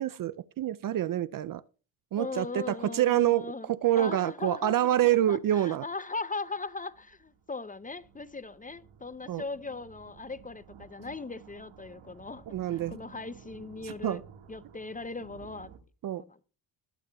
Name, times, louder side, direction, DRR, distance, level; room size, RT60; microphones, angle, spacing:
voice 1, 0.0-1.6 2.1-5.8 9.3-9.4 12.5-13.0 13.8-14.2 16.0-16.2, right 12 dB, 45° right, 0.4 m, -27 dB
voice 2, 2.2-4.8 5.3-14.2 14.5-15.7 16.3-16.4, left 3 dB, 15° left, 0.6 m, -39 dB
sound 1, 6.3-15.8, right 8 dB, 65° right, 1.8 m, -53 dB
21.0 x 8.3 x 2.3 m
supercardioid pair, 75°, 49 cm